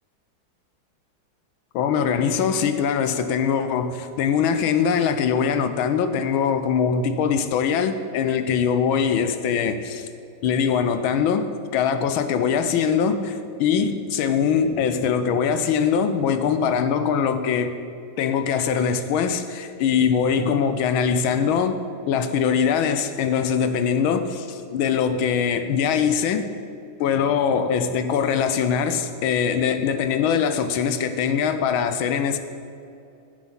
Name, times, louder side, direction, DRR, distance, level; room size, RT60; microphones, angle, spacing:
voice 1, 1.7-10.1 10.4-17.8 18.2-26.5 27.0-32.4, left 7 dB, 90° left, 1.5 m, -22 dB
15.5 x 8.3 x 4.0 m
omnidirectional pair, 2.2 m